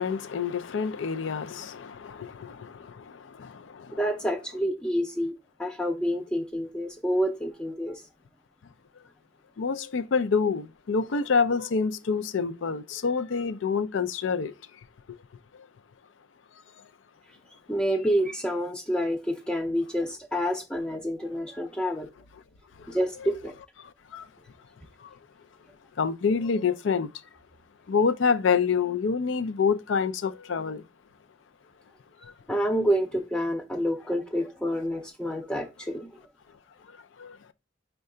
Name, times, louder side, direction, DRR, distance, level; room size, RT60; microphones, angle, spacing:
voice 1, 0.0-4.0 9.6-14.5 22.8-23.3 23.8-24.3 25.0-25.1 26.0-27.1 27.9-30.8 32.2-32.3 36.9-37.4, left 5 dB, 85° left, 0.4 m, -27 dB
voice 2, 3.9-5.3 5.6-8.0 17.7-22.1 22.9-23.5 32.5-36.1, equal, 5° left, 0.4 m, -28 dB
5.4 x 2.2 x 3.7 m
head